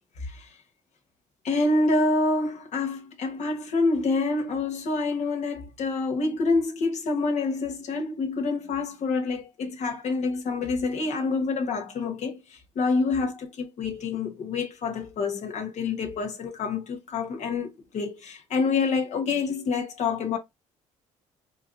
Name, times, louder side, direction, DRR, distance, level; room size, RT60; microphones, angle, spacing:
voice 1, 1.4-20.4, left 3 dB, 55° left, 1.3 m, -27 dB
4.5 x 2.7 x 2.6 m
cardioid pair, 105°, 14 cm